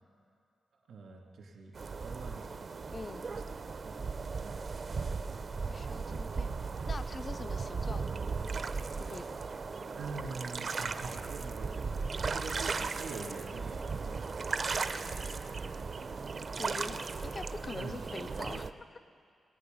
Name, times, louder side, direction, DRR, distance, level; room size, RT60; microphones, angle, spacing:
voice 1, 0.9-2.8 3.3-3.4 3.8-4.1 4.4-4.6 6.1-6.7 10.0-14.2 17.7-18.0 18.5-18.6, right 4 dB, 80° right, -1 dB, 2.6 m, -45 dB
sound 1, 1.7-18.7, right 4 dB, 50° right, 0.5 m, -36 dB
voice 2, 2.9-3.3 5.7-6.5 6.9-8.1 9.1-9.4 16.6-17.0 17.2-18.7, left 3 dB, 35° left, 11 dB, 0.3 m, -44 dB
21.5 x 9.0 x 5.4 m, 2.4 s
cardioid pair, 105°, 0 cm